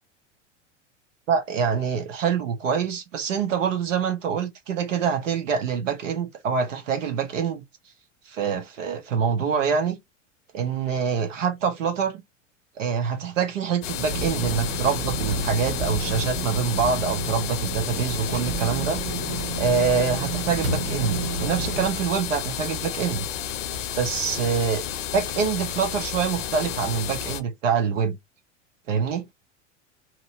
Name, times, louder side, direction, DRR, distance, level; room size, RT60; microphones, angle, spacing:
voice 1, 1.3-7.6 8.3-10.0 10.5-12.2 12.8-19.0 19.6-23.3 24.0-24.8 25.1-28.2 28.9-29.3, right 6 dB, 80° right, 1.0 m, -25 dB
sound 1, 13.8-27.4, left 9 dB, 80° left, 0.5 m, -32 dB
sound 2, 14.1-21.9, right 3 dB, 40° right, 1.2 m, -31 dB
2.9 x 2.7 x 2.7 m
hypercardioid pair, 90°, 37 cm